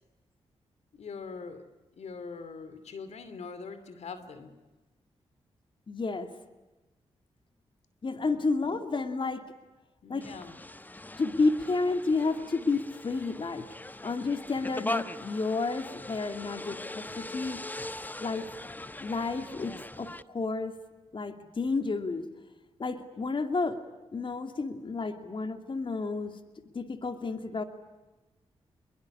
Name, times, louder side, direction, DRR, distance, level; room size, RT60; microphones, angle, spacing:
voice 1, 0.9-1.6 2.0-4.6 8.1-8.4 10.0-10.5, left 5 dB, 75° left, 12 dB, 2.7 m, -42 dB
voice 2, 5.9-6.3 8.0-9.5 10.1-10.3 11.2-13.7 14.0-17.6 18.2-18.5 19.0-20.8 21.1-22.3 22.8-23.8 24.1-26.4 26.7-27.6, left 3 dB, 45° left, 8 dB, 2.7 m, -31 dB
sound 1, 10.2-20.2, left 2 dB, 15° left, 1.0 m, -40 dB
26.5 x 23.0 x 9.9 m, 1.1 s
cardioid pair, 65°, 11 cm